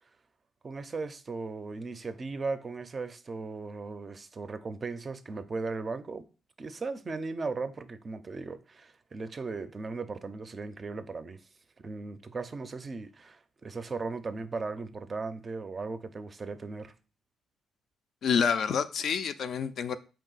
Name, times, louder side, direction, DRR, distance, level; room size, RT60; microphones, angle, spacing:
voice 1, 0.6-6.2 6.6-11.4 11.8-16.9, right 4 dB, 35° right, 0.4 m, -37 dB
voice 2, 18.2-20.0, left 6 dB, 65° left, 0.3 m, -28 dB
4.5 x 2.7 x 3.9 m
cardioid pair, 90°, 0 cm